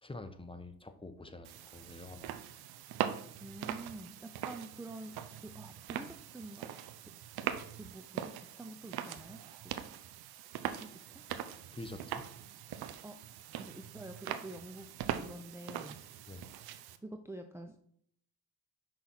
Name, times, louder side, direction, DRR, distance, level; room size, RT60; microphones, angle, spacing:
voice 1, 0.0-2.3 11.7-12.2 16.3-16.4, left 2 dB, 15° left, 8 dB, 0.9 m, -47 dB
sound 1, 1.4-17.0, right 10 dB, 70° right, 0.7 m, -42 dB
voice 2, 3.4-5.1 5.4-6.7 7.8-9.4 10.6-10.9 13.0-13.2 13.6-14.8 15.1-16.0 17.0-17.8, right 2 dB, 5° right, 5 dB, 0.6 m, -47 dB
5.6 x 4.1 x 6.1 m, 0.66 s
hypercardioid pair, 50°, 40 cm